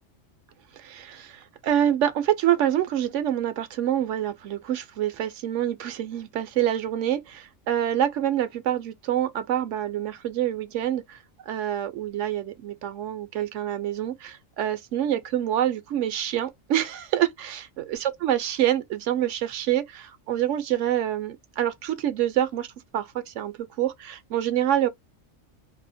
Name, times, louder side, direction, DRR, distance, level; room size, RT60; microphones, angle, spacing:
voice 1, 0.8-11.2 11.5-17.7 18.2-22.7 22.9-24.9, right 11 dB, 70° right, 0.9 m, -26 dB
2.7 x 2.0 x 2.5 m
omnidirectional pair, 1.4 m